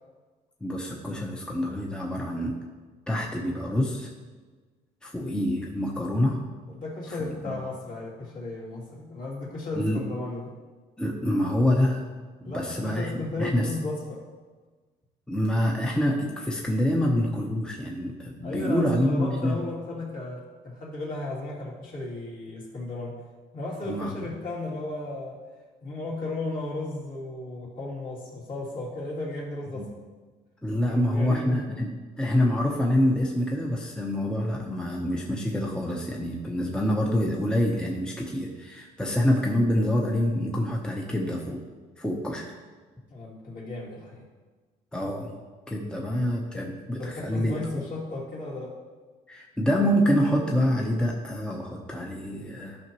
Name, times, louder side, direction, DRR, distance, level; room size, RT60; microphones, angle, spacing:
voice 1, 0.6-2.6 3.1-4.1 5.0-6.4 7.1-7.3 9.7-10.0 11.0-12.1 12.4-13.1 13.4-13.7 15.3-19.6 23.9-24.3 29.7-29.8 30.6-41.6 42.0-42.5 44.9-45.3 45.7-47.8 49.3-52.8, left 1 dB, 5° left, -1 dB, 0.9 m, -26 dB
voice 2, 6.7-10.5 12.4-14.2 18.4-23.2 23.5-25.4 25.8-29.9 31.0-31.8 43.1-44.3 46.0-46.1 47.0-48.7, left 2 dB, 55° left, -4 dB, 2.8 m, -35 dB
12.5 x 5.8 x 3.1 m, 1.4 s
cardioid pair, 110°, 17 cm